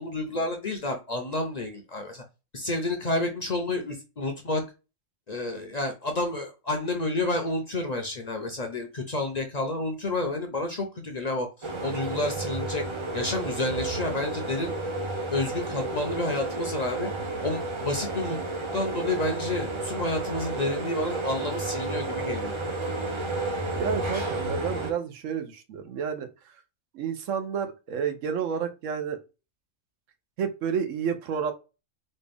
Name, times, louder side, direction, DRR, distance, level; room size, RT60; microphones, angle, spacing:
voice 1, 0.0-2.2 2.5-4.6 5.3-12.8 13.1-14.7 15.3-17.1 17.4-18.4 18.7-22.5, left 2 dB, 45° left, 4 dB, 0.6 m, -30 dB
sound 1, 11.6-24.9, right 2 dB, 40° right, 0.4 m, -31 dB
voice 2, 23.8-26.3 26.9-29.2 30.4-31.5, right 7 dB, 80° right, 7 dB, 1.1 m, -30 dB
4.2 x 2.3 x 3.4 m, 0.29 s
omnidirectional pair, 1.3 m